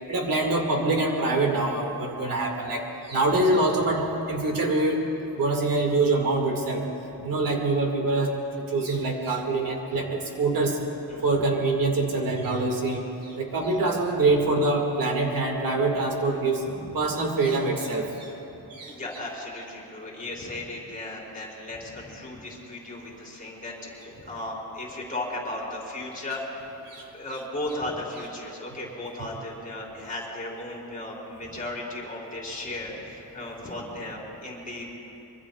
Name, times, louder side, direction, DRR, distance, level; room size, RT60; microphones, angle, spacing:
voice 1, 0.1-5.0 5.3-6.8 7.2-10.8 11.2-16.6 16.9-18.3 18.7-19.0 26.9-27.0, right 2 dB, 60° right, 1 dB, 1.9 m, -25 dB
voice 2, 11.1-11.4 14.3-14.5 16.7-16.9 18.5-26.6 27.1-34.9, left 1 dB, 20° left, -4 dB, 3.8 m, -36 dB
25.0 x 23.5 x 2.3 m, 3.0 s
wide cardioid pair, 175°, 37 cm